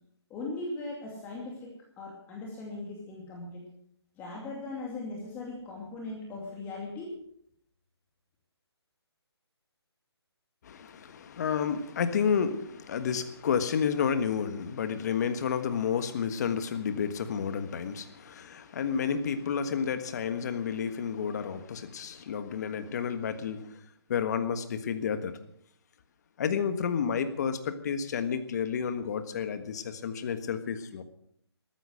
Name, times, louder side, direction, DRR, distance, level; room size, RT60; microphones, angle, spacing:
voice 1, 0.3-3.7 4.2-7.2, left 2 dB, 15° left, -2 dB, 2.5 m, -39 dB
voice 2, 10.6-23.7 24.1-25.3 26.4-31.0, left 7 dB, 40° left, 10 dB, 1.4 m, -30 dB
14.0 x 13.0 x 6.3 m, 0.69 s
hypercardioid pair, 160°, 14 cm